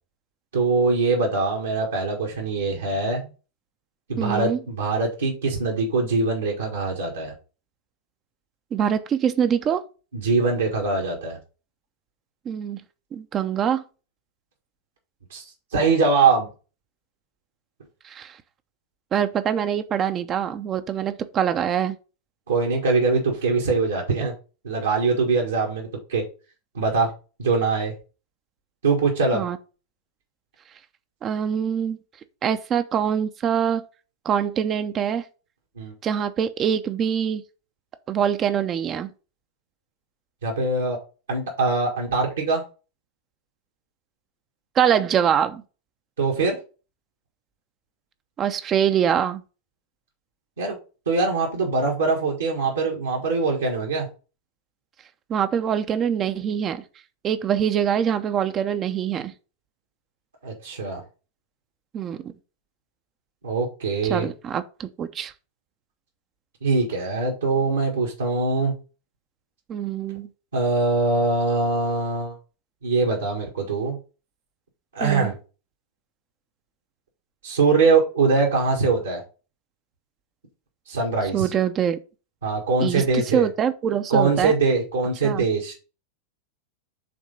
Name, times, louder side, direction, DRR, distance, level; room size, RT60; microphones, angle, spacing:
voice 1, 0.5-3.3 4.1-7.3 10.1-11.4 15.3-15.4 15.7-16.5 22.5-24.3 24.6-26.2 26.7-27.1 27.4-27.9 28.8-29.4 35.8-35.9 40.4-41.0 41.3-42.6 46.2-46.6 50.6-50.8 51.0-54.1 60.4-61.0 63.4-64.3 66.6-68.7 70.5-72.4 72.8-74.0 74.9-75.3 77.4-79.2 80.9-81.5 82.4-83.5 84.1-85.7, right 4 dB, 70° right, 1.7 m, -22 dB
voice 2, 4.2-4.6 8.7-9.8 12.5-12.8 13.1-13.8 18.0-18.4 19.1-22.0 29.3-29.6 31.2-32.0 32.4-33.8 34.2-35.2 36.0-37.4 38.1-39.1 44.8-45.6 48.4-49.4 55.3-56.8 57.2-59.3 61.9-62.3 64.1-65.3 69.7-70.3 75.0-75.3 81.3-82.0 82.8-84.5 85.2-85.5, right 8 dB, 30° right, 0.6 m, -24 dB
6.0 x 3.7 x 5.4 m
figure-of-eight pair, 90°, 0 cm